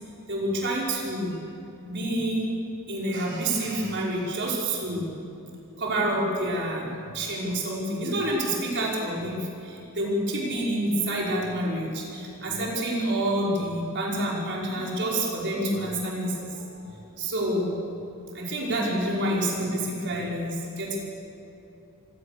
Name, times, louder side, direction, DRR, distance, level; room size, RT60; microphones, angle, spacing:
voice 1, 0.3-1.4 1.9-2.4 2.9-5.1 5.8-16.8 17.2-17.7 18.3-21.0, right 1 dB, 55° right, -3 dB, 5.2 m, -28 dB
25.5 x 17.5 x 6.8 m, 2.8 s
head